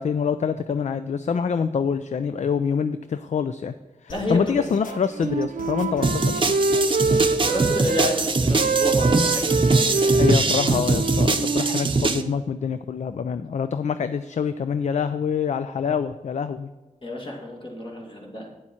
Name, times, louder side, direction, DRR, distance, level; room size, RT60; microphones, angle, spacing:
voice 1, 0.0-3.7 4.0-6.6 10.1-16.7, left 6 dB, 60° left, 11 dB, 0.4 m, -26 dB
sound 1, 4.1-10.1, left 3 dB, 80° left, 1.0 m, -43 dB
voice 2, 4.1-4.7 7.4-10.4 17.0-18.5, left 2 dB, 40° left, -1 dB, 2.2 m, -30 dB
Wind instrument woodwind instrument, 4.7-8.1 8.4-12.3, right 4 dB, 80° right, 0.6 m, -25 dB
sound 2, 6.0-12.2, right 3 dB, 40° right, 0.7 m, -22 dB
9.6 x 7.2 x 4.3 m, 1.2 s
wide cardioid pair, 110°, 14 cm